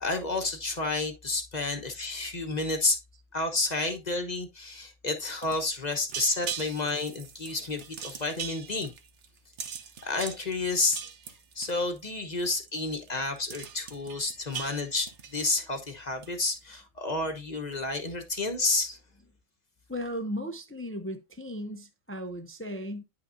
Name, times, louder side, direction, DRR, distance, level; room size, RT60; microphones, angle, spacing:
voice 1, 0.0-3.0 3.3-8.9 10.0-11.0 11.5-19.0, left 3 dB, 35° left, 1.1 m, -30 dB
sound 1, 5.3-12.1 12.4-12.7 13.0-13.1 13.4-15.9 16.2-16.6, right 7 dB, 60° right, 1.2 m, -40 dB
voice 2, 19.9-23.0, equal, 10° left, 0.6 m, -36 dB
9.8 x 5.8 x 2.6 m
omnidirectional pair, 1.4 m